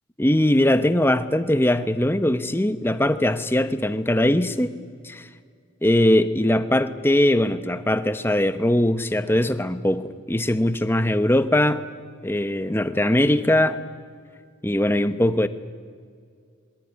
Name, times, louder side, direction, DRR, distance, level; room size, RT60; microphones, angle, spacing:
voice 1, 0.2-4.8 5.0-5.3 5.8-11.8 12.2-13.8 14.6-15.5, left 1 dB, 10° left, 11 dB, 0.9 m, -21 dB
23.0 x 21.5 x 9.7 m, 2.1 s
head